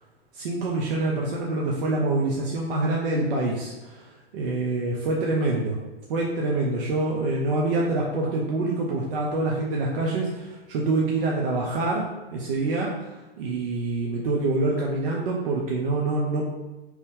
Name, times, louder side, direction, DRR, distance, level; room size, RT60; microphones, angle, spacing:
voice 1, 0.3-5.8 6.1-12.1 12.3-16.5, right 2 dB, 60° right, -2 dB, 0.7 m, -26 dB
3.0 x 2.6 x 3.5 m, 1.1 s
hypercardioid pair, 110°, 31 cm